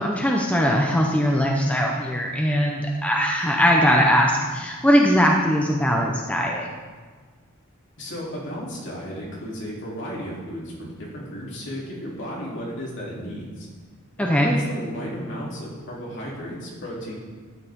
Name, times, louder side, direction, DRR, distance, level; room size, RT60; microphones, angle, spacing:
voice 1, 0.0-6.7 14.2-14.5, equal, 5° left, -1 dB, 0.8 m, -20 dB
voice 2, 8.0-13.7 14.2-17.2, equal, 55° left, -4 dB, 3.1 m, -34 dB
12.5 x 9.6 x 3.7 m, 1.5 s
head